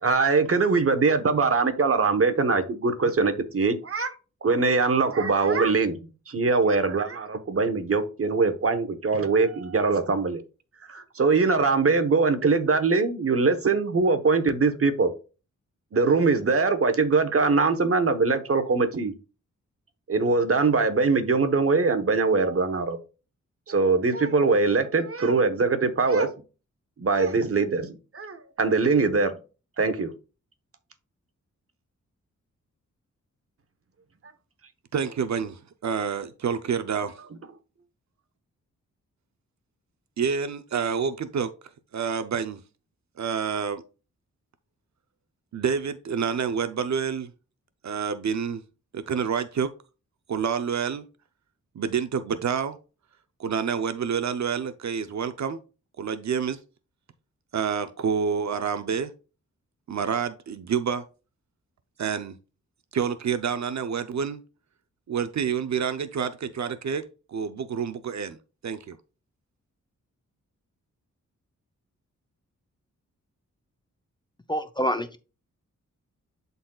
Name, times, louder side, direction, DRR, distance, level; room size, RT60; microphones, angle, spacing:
voice 1, 0.0-4.1 4.4-6.0 6.3-10.4 10.9-15.1 15.9-19.1 20.1-23.0 23.7-26.3 27.0-29.4 29.8-30.1, right 4 dB, 45° right, 1.1 m, -22 dB
voice 2, 34.9-37.1 40.2-41.5 41.9-42.6 43.2-43.8 45.5-47.3 47.8-48.6 48.9-49.7 50.3-51.0 51.8-52.8 53.4-55.6 56.0-56.6 57.5-59.1 59.9-61.0 62.0-62.4 62.9-64.4 65.1-67.0 67.3-68.4 68.6-69.0, right 6 dB, 65° right, 0.6 m, -28 dB
voice 3, 74.5-75.2, equal, 15° left, 0.6 m, -26 dB
11.5 x 4.1 x 2.3 m
cardioid pair, 75°, 31 cm